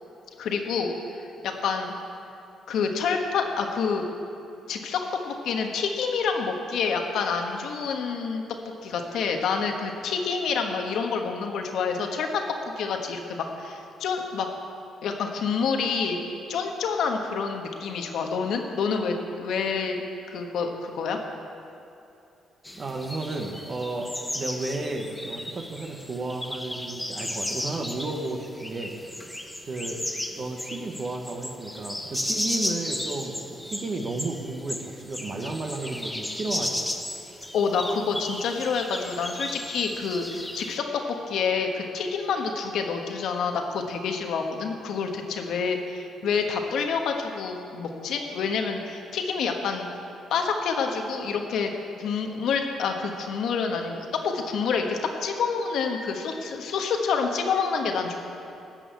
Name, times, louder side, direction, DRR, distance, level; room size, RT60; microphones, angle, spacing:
voice 1, 0.4-0.9 1.4-1.9 2.7-4.1 4.7-8.4 8.8-12.4 12.8-14.5 15.0-16.2 16.5-21.2 37.5-49.9 50.3-51.7 52.0-58.2, left 5 dB, 75° left, 3 dB, 1.3 m, -28 dB
sound 1, 22.6-40.8, left 1 dB, 5° left, 0.9 m, -34 dB
voice 2, 22.8-24.1 24.3-28.9 29.7-36.9, right 2 dB, 45° right, 2 dB, 1.2 m, -33 dB
14.0 x 5.7 x 8.6 m, 2.7 s
cardioid pair, 90°, 0 cm